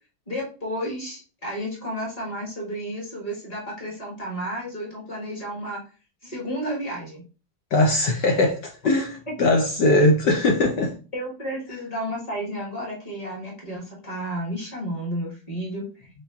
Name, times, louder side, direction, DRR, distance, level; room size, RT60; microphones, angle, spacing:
voice 1, 0.3-5.8 6.2-7.2 9.3-9.4 11.1-15.9, equal, 25° left, -3 dB, 1.1 m, -32 dB
voice 2, 7.7-9.1 9.4-10.9, left 2 dB, 70° left, 0 dB, 1.1 m, -20 dB
4.2 x 3.5 x 2.3 m, 0.35 s
omnidirectional pair, 2.3 m